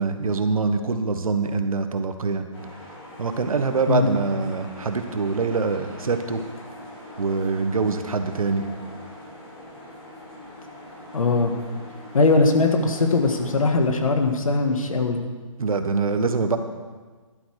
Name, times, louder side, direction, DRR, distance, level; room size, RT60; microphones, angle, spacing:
voice 1, 0.0-2.5 3.2-6.4 7.2-8.7 15.6-16.6, right 4 dB, 80° right, 8 dB, 1.3 m, -24 dB
sound 1, 2.5-13.6, left 1 dB, 45° left, 4.7 m, -42 dB
voice 2, 11.1-11.5 12.1-15.2, left 3 dB, 75° left, 5 dB, 1.8 m, -20 dB
11.5 x 10.5 x 4.9 m, 1.4 s
hypercardioid pair, 170°, 18 cm